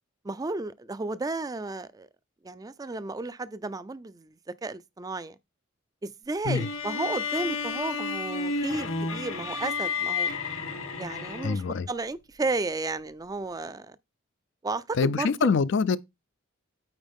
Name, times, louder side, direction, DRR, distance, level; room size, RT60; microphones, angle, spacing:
voice 1, 0.2-2.1 2.4-5.4 6.0-10.3 11.0-14.0 14.6-15.5, right 3 dB, 20° right, 0.4 m, -33 dB
sound 1, 6.5-11.8, left 4 dB, 85° left, 1.2 m, -31 dB
voice 2, 11.4-11.9 15.0-16.0, left 5 dB, 60° left, 0.4 m, -24 dB
8.9 x 4.5 x 3.5 m
head